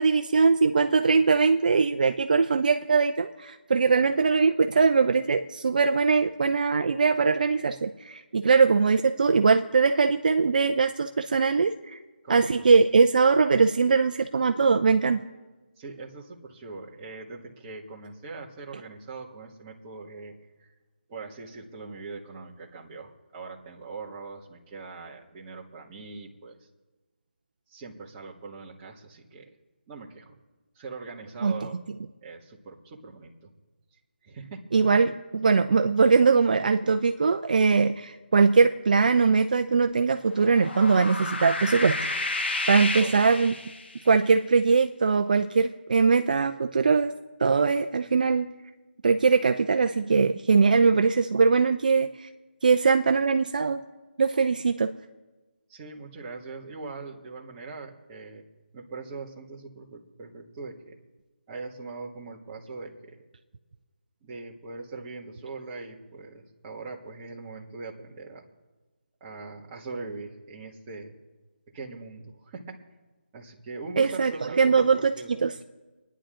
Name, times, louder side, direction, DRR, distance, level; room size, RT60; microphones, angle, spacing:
voice 1, 0.0-12.0 12.3-15.2 31.4-31.5 34.7-42.0 42.2-42.4 42.7-43.5 44.1-47.1 47.4-48.5 49.0-52.3 52.6-53.8 54.2-54.9 74.0-74.3 74.6-75.1 75.4-75.5, right 4 dB, 45° right, 6 dB, 0.6 m, -21 dB
voice 2, 15.8-20.7 21.1-26.7 27.7-29.5 29.9-30.4 30.7-31.8 32.2-33.5 34.2-34.6 43.0-43.4 55.7-58.4 58.7-61.0 61.5-63.2 64.2-68.5 69.2-71.1 71.7-72.8 73.3-75.4, right 3 dB, 20° right, -2 dB, 1.7 m, -41 dB
sound 1, 40.3-44.1, left 2 dB, 70° left, 1.6 m, -31 dB
27.0 x 10.0 x 3.8 m, 1.2 s
figure-of-eight pair, 165°, 6 cm